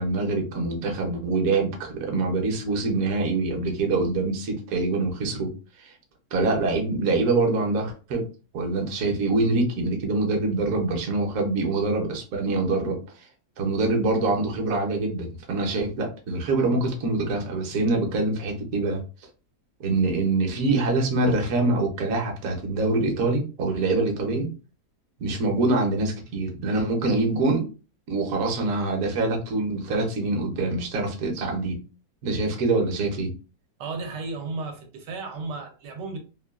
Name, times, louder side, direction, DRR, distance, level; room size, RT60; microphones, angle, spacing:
voice 1, 0.0-5.5 5.8-5.9 6.3-8.3 8.5-13.3 13.6-19.0 19.8-24.5 25.2-27.7 28.1-31.8 32.2-33.3, right 3 dB, 60° right, 1.0 m, -25 dB
voice 2, 33.8-36.2, right 3 dB, 80° right, 1.3 m, -34 dB
3.0 x 2.2 x 2.3 m
omnidirectional pair, 1.9 m